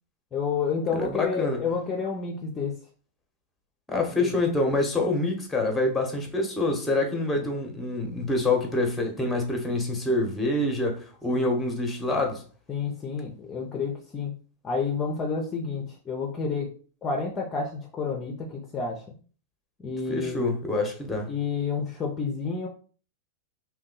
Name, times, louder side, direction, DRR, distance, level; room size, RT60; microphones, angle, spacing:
voice 1, 0.3-2.8 4.1-4.3 7.4-7.5 12.7-14.3 14.6-19.1 19.8-20.5 21.3-22.7, left 5 dB, 25° left, 0.6 m, -30 dB
voice 2, 0.9-1.6 3.9-12.4 20.1-21.3, left 2 dB, 10° left, 1.0 m, -26 dB
2.6 x 2.3 x 3.8 m
hypercardioid pair, 120°, 0 cm